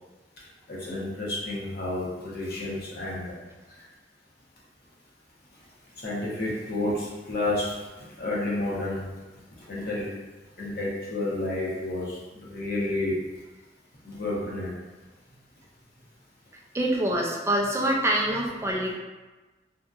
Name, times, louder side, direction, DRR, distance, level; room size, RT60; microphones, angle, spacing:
voice 1, 0.7-3.3 6.0-7.7 8.2-9.0 9.7-10.1 10.6-12.2 12.4-13.2 14.0-14.7, left 2 dB, 60° left, -6 dB, 0.8 m, -30 dB
voice 2, 16.7-18.9, right 1 dB, 15° right, -1 dB, 0.3 m, -25 dB
2.7 x 2.5 x 2.4 m, 1.2 s
head